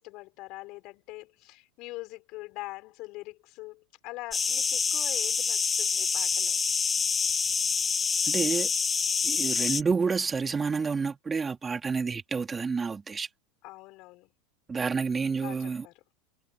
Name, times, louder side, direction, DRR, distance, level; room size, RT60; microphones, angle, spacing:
voice 1, 0.0-6.6 13.6-14.3 15.4-15.9, left 21 dB, 55° left, 5.7 m, -43 dB
sound 1, 4.3-9.8, left 5 dB, 25° left, 1.7 m, -27 dB
voice 2, 8.3-8.7 9.2-13.3 14.7-15.9, right 5 dB, 20° right, 3.5 m, -29 dB
hypercardioid pair, 95°, 0 cm